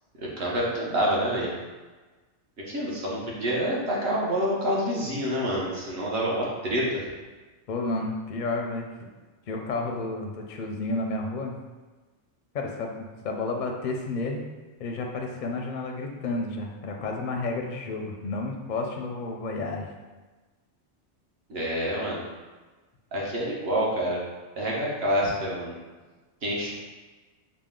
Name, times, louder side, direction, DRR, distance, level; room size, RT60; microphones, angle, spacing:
voice 1, 0.2-1.5 2.6-7.1 21.5-22.2 23.1-24.2 24.6-25.8 26.4-26.7, equal, 60° right, -4 dB, 1.1 m, -27 dB
voice 2, 7.7-9.1 9.5-11.6 12.5-14.4 14.8-19.9, left 3 dB, 55° left, 1 dB, 0.5 m, -31 dB
4.8 x 2.1 x 3.6 m, 1.3 s
omnidirectional pair, 1.2 m